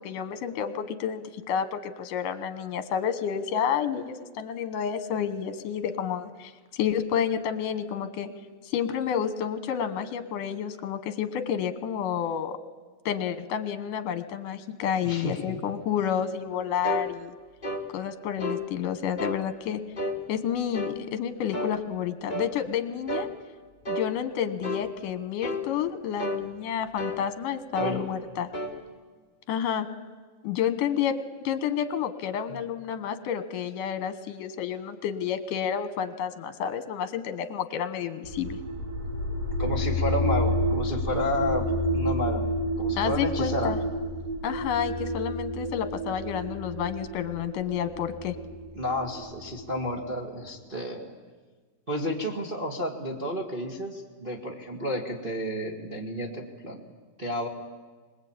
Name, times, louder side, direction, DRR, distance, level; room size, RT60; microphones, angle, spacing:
voice 1, 0.0-8.3 8.6-12.6 13.1-17.4 17.9-19.8 20.3-23.3 23.9-28.5 29.5-29.9 30.4-31.2 31.4-38.6 43.0-43.8 44.4-48.3, left 8 dB, 75° left, 11 dB, 2.8 m, -30 dB
voice 2, 15.0-15.4 27.8-28.0 32.5-32.6 39.6-42.5 42.8-43.7 48.7-51.1 51.9-56.8 57.2-57.5, left 1 dB, 25° right, -1 dB, 1.4 m, -31 dB
sound 1, 16.8-17.1 17.6-17.9 18.4-18.6 19.2-19.4 20.0-20.2 20.7-21.0 21.5-21.8 22.3-22.5 23.1-23.3 23.8-24.1 24.6-24.9 25.4-25.7 26.2-26.4 27.0-27.2 27.7-28.0 28.5-28.7, left 1 dB, 20° left, 1.4 m, -31 dB
sound 2, 38.2-50.0, equal, 85° right, 4.8 m, -30 dB
25.5 x 20.5 x 8.8 m, 1.4 s
omnidirectional pair, 3.9 m